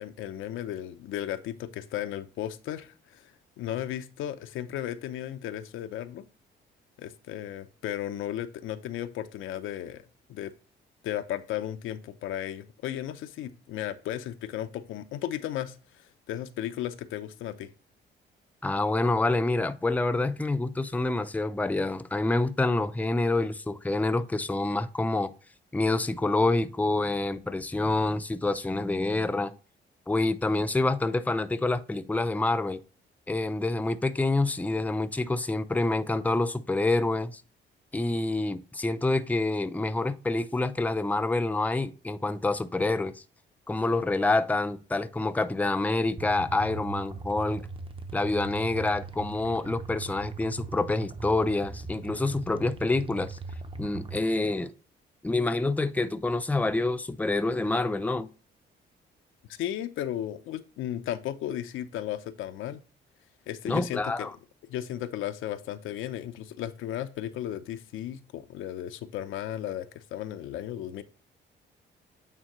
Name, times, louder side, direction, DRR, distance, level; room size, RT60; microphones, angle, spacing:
voice 1, 0.0-6.3 7.0-10.0 10.3-10.5 11.0-17.7 59.5-62.8 63.5-64.3 64.7-71.0, left 11 dB, 85° left, 0.7 m, -35 dB
voice 2, 18.6-25.3 25.7-29.5 30.1-32.8 33.3-37.4 37.9-43.2 43.7-47.6 48.1-53.4 53.8-54.7 55.2-58.3 63.7-64.3, left 2 dB, 10° left, 0.5 m, -27 dB
sound 1, 46.2-54.2, right 4 dB, 25° right, 0.8 m, -40 dB
8.8 x 3.7 x 3.0 m
cardioid pair, 90°, 20 cm